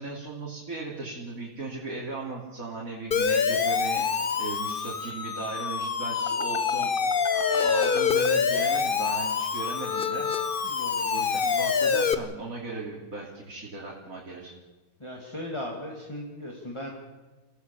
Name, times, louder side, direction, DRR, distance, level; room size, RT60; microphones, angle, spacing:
voice 1, 0.0-10.5 11.1-14.5, right 3 dB, 70° right, -3 dB, 3.6 m, -37 dB
Siren, 3.1-12.1, left 6 dB, 40° left, 1.1 m, -26 dB
voice 2, 10.6-11.2 15.0-16.9, left 1 dB, 20° left, -1 dB, 2.8 m, -37 dB
28.5 x 17.0 x 7.1 m, 1.2 s
omnidirectional pair, 1.5 m